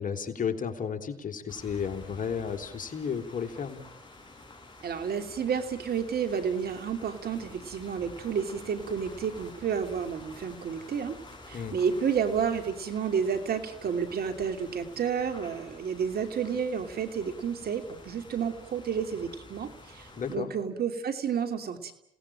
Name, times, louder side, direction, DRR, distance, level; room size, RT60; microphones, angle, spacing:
voice 1, 0.0-3.8 11.5-11.8 20.1-20.5, left 7 dB, 45° left, 5 dB, 3.7 m, -33 dB
sound 1, 1.5-20.4, left 2 dB, 25° left, 7.2 m, -49 dB
voice 2, 4.8-11.2 11.5-21.9, right 7 dB, 60° right, 8 dB, 2.9 m, -31 dB
29.0 x 18.5 x 8.9 m, 0.82 s
supercardioid pair, 55°, 18 cm